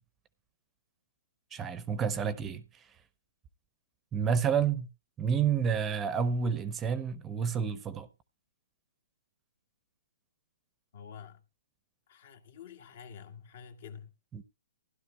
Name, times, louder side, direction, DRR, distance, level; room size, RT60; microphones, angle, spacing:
voice 1, 1.5-2.6 4.1-4.9 5.2-8.1 14.3-14.4, right 7 dB, 15° right, 0.7 m, -29 dB
voice 2, 10.9-11.4 12.1-14.1, left 7 dB, 60° left, 1.7 m, -48 dB
16.5 x 11.5 x 2.2 m
hypercardioid pair, 155°, 0 cm